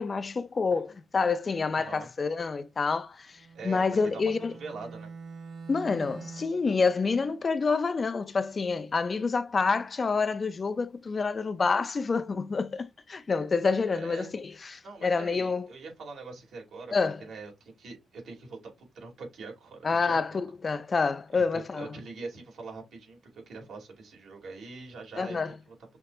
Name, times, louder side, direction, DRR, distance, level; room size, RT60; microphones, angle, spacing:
voice 1, 0.0-3.4 3.6-4.5 5.7-15.7 16.9-17.2 19.8-21.9 25.2-25.5, left 4 dB, 30° left, 0.4 m, -28 dB
voice 2, 1.7-2.1 3.5-5.1 13.9-14.3 14.8-20.4 21.3-25.7, right 3 dB, 65° right, 2.6 m, -43 dB
Bowed string instrument, 3.3-6.7, right 5 dB, 50° right, 0.8 m, -45 dB
5.8 x 3.2 x 2.5 m
wide cardioid pair, 150°, 0 cm